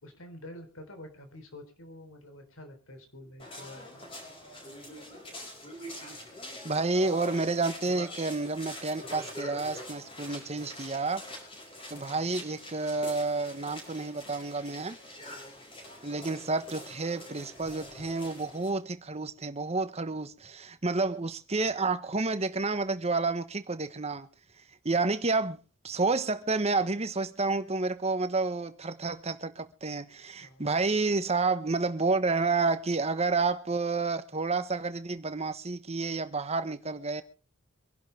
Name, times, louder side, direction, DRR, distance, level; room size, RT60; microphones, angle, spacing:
voice 1, 0.0-4.0 30.4-30.7, left 1 dB, 75° left, 3.6 m, -48 dB
sound 1, 3.4-18.7, left 1 dB, 25° left, 5.3 m, -44 dB
voice 2, 6.6-11.2 11.9-15.0 16.0-24.3 24.8-25.6 25.8-37.2, right 3 dB, 30° right, 1.1 m, -30 dB
25.0 x 11.5 x 3.4 m
head